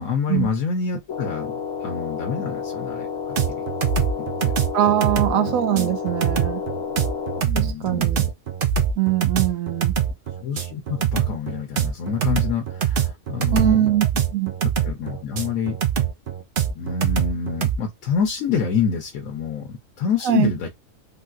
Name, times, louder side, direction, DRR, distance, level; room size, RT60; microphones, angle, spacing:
voice 1, 0.0-3.6 4.2-4.5 5.3-5.5 7.4-8.3 10.4-13.9 14.8-15.8 16.7-20.7, left 6 dB, 90° left, 1.2 m, -27 dB
sound 1, 1.1-7.4, left 5 dB, 55° left, 0.9 m, -30 dB
sound 2, 3.4-17.8, right 8 dB, 55° right, 0.6 m, -23 dB
voice 2, 4.7-6.6 7.5-8.2 9.0-10.0 13.5-14.5 20.2-20.5, right 12 dB, 85° right, 1.0 m, -22 dB
3.6 x 2.6 x 2.4 m
omnidirectional pair, 1.4 m